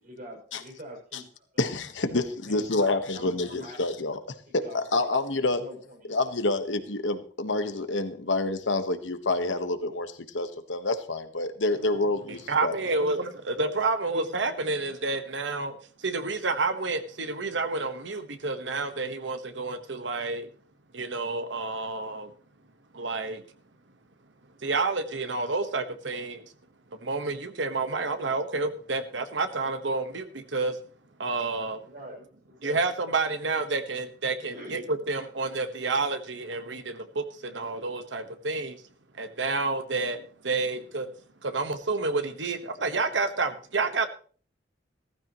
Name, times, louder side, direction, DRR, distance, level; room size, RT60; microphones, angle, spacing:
voice 1, 0.0-1.7 2.5-3.8 4.6-5.1 5.6-6.4 12.9-13.1 14.0-14.7 31.8-32.8 34.5-34.8, equal, 50° right, 1 dB, 6.4 m, -44 dB
voice 2, 1.6-4.2 4.5-5.6 6.1-12.7, left 2 dB, 90° left, 9 dB, 1.4 m, -28 dB
voice 3, 12.5-20.5 20.9-22.3 22.9-23.4 24.6-26.5 27.0-30.8 31.2-31.8 32.6-38.8 39.1-41.1 41.4-44.1, right 3 dB, 80° right, 9 dB, 1.4 m, -29 dB
15.5 x 14.0 x 3.1 m, 0.43 s
head